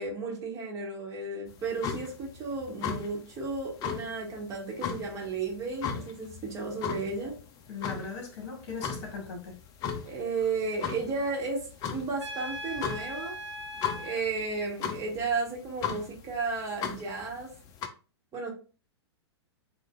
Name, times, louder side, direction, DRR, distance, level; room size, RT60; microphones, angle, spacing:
voice 1, 0.0-7.3 10.0-13.4 13.9-17.5 18.3-18.5, right 4 dB, 25° right, -2 dB, 1.4 m, -33 dB
sound 1, 1.5-17.9, left 7 dB, 25° left, 0.5 m, -38 dB
voice 2, 7.7-9.6, left 4 dB, 45° left, 2 dB, 1.9 m, -38 dB
Trumpet, 12.2-14.2, equal, 90° right, 1.2 m, -39 dB
7.5 x 2.5 x 2.4 m, 0.35 s
figure-of-eight pair, 105°, 14 cm